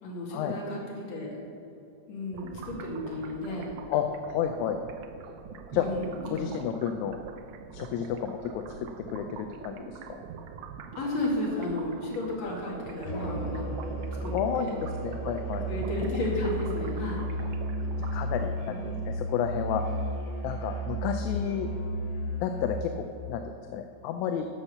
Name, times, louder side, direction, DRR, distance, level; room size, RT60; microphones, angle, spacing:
voice 1, 0.0-1.4 2.1-3.8 5.7-6.5 10.9-13.6 14.2-14.7 15.7-17.2 18.6-18.8, left 1 dB, 65° left, -3 dB, 3.3 m, -33 dB
sound 1, 2.3-18.8, right 6 dB, 75° right, 1.4 m, -45 dB
voice 2, 3.9-4.8 5.7-5.9 6.3-7.2 7.7-10.2 14.3-15.7 18.1-19.8 20.4-21.7 22.4-24.5, left 8 dB, 85° left, 6 dB, 2.0 m, -31 dB
Musical instrument, 13.0-22.9, right 1 dB, 20° left, 0.9 m, -33 dB
11.5 x 7.1 x 6.6 m, 2.5 s
omnidirectional pair, 3.3 m